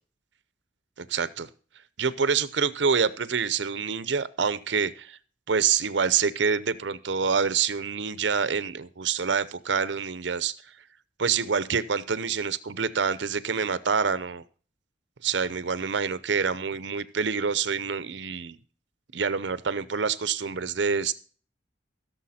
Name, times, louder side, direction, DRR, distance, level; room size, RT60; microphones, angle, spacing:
voice 1, 1.0-1.5 2.0-5.2 5.5-10.5 11.2-14.4 15.2-18.6 19.1-21.1, right 6 dB, 70° right, 16 dB, 0.7 m, -26 dB
15.5 x 7.0 x 4.3 m, 0.41 s
head